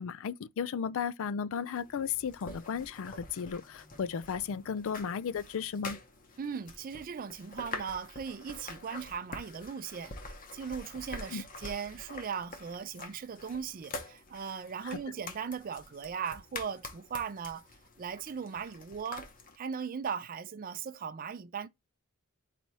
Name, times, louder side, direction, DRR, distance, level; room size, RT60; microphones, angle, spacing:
voice 1, 0.0-6.0 11.3-11.4, left 7 dB, 65° left, 0.4 m, -35 dB
sound 1, 1.7-19.6, left 3 dB, 40° left, 0.8 m, -46 dB
voice 2, 6.4-17.7 18.0-19.3 19.6-21.7, right 6 dB, 40° right, 0.4 m, -38 dB
4.1 x 2.8 x 4.5 m
head